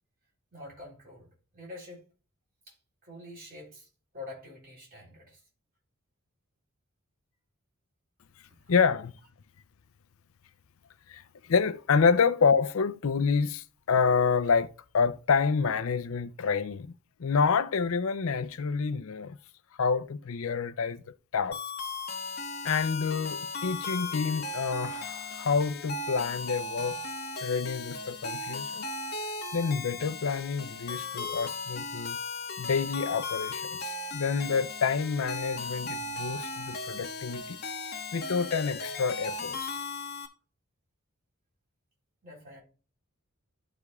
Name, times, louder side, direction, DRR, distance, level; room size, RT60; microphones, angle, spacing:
voice 1, 0.5-2.0 2.7-2.8 3.0-3.9 4.1-5.4 33.2-33.3 38.8-38.9 42.2-42.6, left 2 dB, 40° right, 3.7 m, -46 dB
voice 2, 8.7-9.1 11.1-11.2 11.5-16.9 17.2-19.4 19.8-21.0 21.3-21.6 22.6-27.0 27.4-28.9 29.5-32.2 32.6-37.6 38.1-39.8, left 5 dB, 75° left, 0.5 m, -28 dB
sound 1, 21.5-40.3, left 3 dB, 45° left, 1.3 m, -37 dB
13.0 x 5.0 x 2.3 m
head